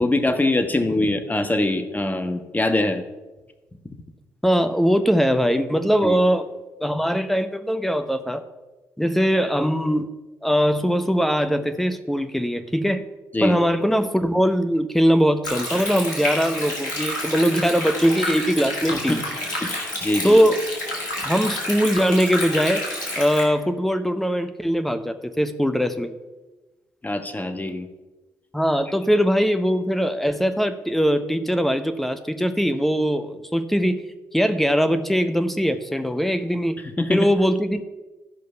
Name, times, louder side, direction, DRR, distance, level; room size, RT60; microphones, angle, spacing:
voice 1, 0.0-3.0 6.0-6.2 13.3-13.6 19.1-19.2 19.6-20.4 27.0-27.9 37.0-37.3, left 2 dB, 15° left, 7 dB, 1.3 m, -23 dB
voice 2, 4.4-6.5 6.8-8.4 9.0-10.1 10.4-13.0 13.4-19.2 20.2-20.6 21.2-22.8 23.2-26.1 28.5-34.0 34.3-36.8 37.1-37.9, equal, ahead, 9 dB, 0.9 m, -21 dB
Stream, 15.4-23.4, left 1 dB, 85° left, 1.8 m, -29 dB
13.0 x 5.3 x 5.6 m, 1.2 s
figure-of-eight pair, 40°, 9 cm